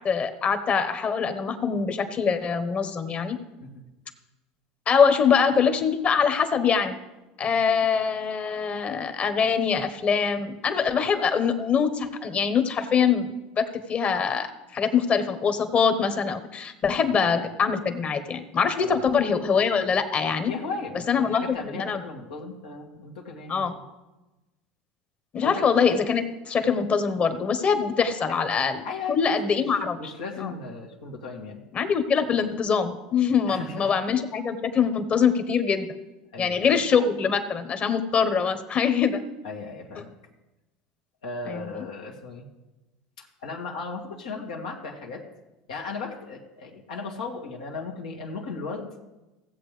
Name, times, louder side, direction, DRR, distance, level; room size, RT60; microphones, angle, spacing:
voice 1, 0.0-3.4 4.9-7.0 7.4-20.5 21.1-22.0 23.5-23.7 25.3-28.8 29.1-30.0 30.4-30.5 31.7-35.9 36.4-39.2 41.5-41.7, left 6 dB, 35° left, 9 dB, 1.2 m, -23 dB
voice 2, 20.5-23.8 25.4-25.6 28.3-28.4 28.8-29.2 29.9-31.6 33.5-33.9 36.3-36.7 39.4-40.1 41.2-42.5 43.2-45.2 45.7-49.0, left 4 dB, 90° left, -1 dB, 1.8 m, -36 dB
16.5 x 7.6 x 3.4 m, 1.0 s
supercardioid pair, 100°, 4 cm